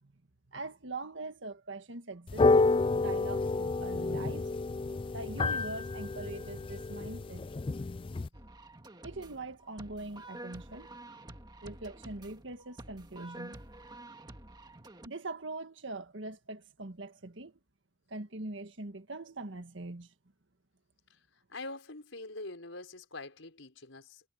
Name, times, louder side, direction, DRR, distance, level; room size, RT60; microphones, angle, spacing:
voice 1, 0.5-2.5 2.9-4.5 5.1-7.5 9.0-10.9 11.6-13.6 15.0-17.5 18.1-20.1, right 2 dB, 70° right, 1.7 m, -42 dB
sound 1, 2.3-8.3, left 3 dB, 25° left, 0.3 m, -29 dB
sound 2, 8.3-15.1, right 1 dB, 20° right, 1.8 m, -49 dB
voice 2, 21.5-24.2, left 2 dB, 90° left, 5.3 m, -44 dB
head